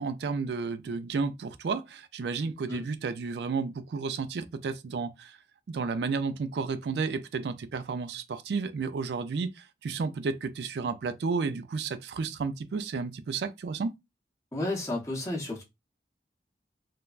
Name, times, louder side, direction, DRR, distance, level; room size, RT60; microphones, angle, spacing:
voice 1, 0.0-5.4 5.7-13.9, right 4 dB, 70° right, 0.4 m, -32 dB
voice 2, 14.5-15.6, left 2 dB, 20° left, 0.7 m, -32 dB
3.2 x 2.1 x 2.4 m
head